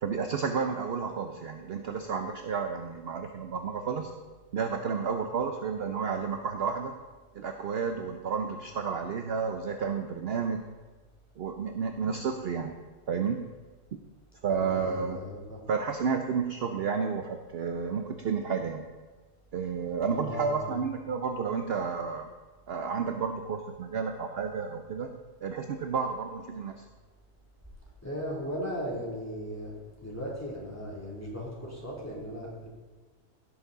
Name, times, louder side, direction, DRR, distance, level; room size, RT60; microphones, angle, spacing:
voice 1, 0.0-4.1 4.5-6.9 7.3-10.7 11.4-12.8 13.1-13.4 14.4-15.2 15.7-18.8 19.5-22.3 22.7-25.1 25.4-26.8, right 6 dB, 55° right, 5 dB, 0.8 m, -31 dB
voice 2, 14.5-15.6 20.1-20.8 28.0-29.7 30.0-32.7, equal, 10° left, -5 dB, 2.8 m, -37 dB
16.0 x 6.9 x 3.9 m, 1.3 s
omnidirectional pair, 1.4 m